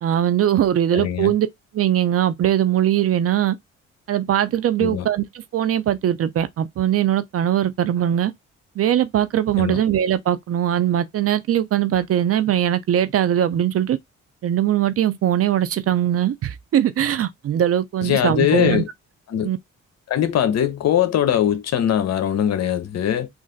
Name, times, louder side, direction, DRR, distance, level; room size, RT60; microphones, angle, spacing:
voice 1, 0.0-1.5 1.7-3.6 4.1-5.2 5.5-8.3 8.8-14.0 14.4-18.8 19.4-19.6, right 11 dB, 50° right, 0.5 m, -20 dB
voice 2, 0.9-1.3 4.8-5.1 9.6-9.8 18.0-18.9 19.3-19.5 20.1-23.3, left 10 dB, 60° left, 0.7 m, -21 dB
3.2 x 2.5 x 3.7 m
cardioid pair, 90°, 30 cm